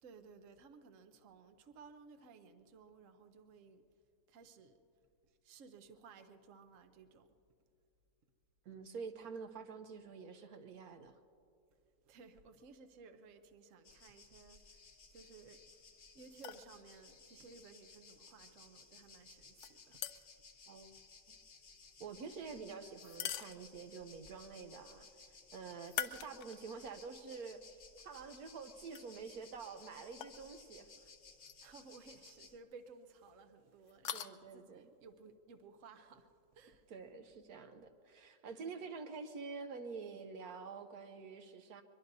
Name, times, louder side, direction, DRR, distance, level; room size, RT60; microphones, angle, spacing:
voice 1, 0.0-3.8 4.3-4.8 5.4-7.3 12.0-14.8 15.1-15.6 16.1-20.0 22.4-22.5 31.6-36.9 38.8-38.9, right 4 dB, 60° right, 8 dB, 1.2 m, -58 dB
voice 2, 8.6-11.2 20.7-20.9 21.3-21.4 22.0-25.1 25.5-27.6 28.0-30.9 34.1-34.9 36.9-41.8, right 5 dB, 80° right, 7 dB, 1.3 m, -48 dB
sound 1, 13.8-32.6, left 4 dB, 45° left, 1.1 m, -59 dB
bruits.chute.petite.urne.gravillons, 16.3-16.7 19.6-20.5 23.0-24.0 25.8-26.8 27.3-27.4 28.9-29.0 30.2-30.4 31.4-31.6 31.9-32.0 33.9-34.3, left 9 dB, 65° left, 0.8 m, -43 dB
23.5 x 22.5 x 2.7 m, 2.5 s
omnidirectional pair, 1.6 m